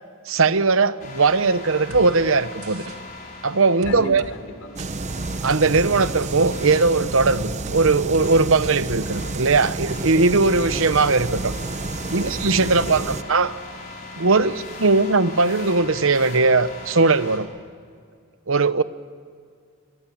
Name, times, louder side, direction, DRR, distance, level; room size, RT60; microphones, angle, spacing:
voice 1, 0.3-2.8 3.4-4.2 5.4-11.5 12.1-13.5 14.2-17.5 18.5-18.8, right 3 dB, 65° right, 0.9 m, -19 dB
sound 1, 1.0-17.4, left 2 dB, 40° left, 5.0 m, -40 dB
sound 2, 1.9-2.1 2.6-3.0 3.8-4.3 4.8-4.9 5.5-5.9 6.2-6.8 7.7-7.8 8.1-8.3 8.6-9.0 9.3-9.4, right 3 dB, 85° right, 2.0 m, -38 dB
voice 2, 3.8-4.8 12.9-13.2, left 1 dB, 90° left, 3.9 m, -34 dB
sound 3, 4.8-13.2, right 3 dB, 30° right, 0.8 m, -30 dB
25.0 x 23.5 x 8.7 m
head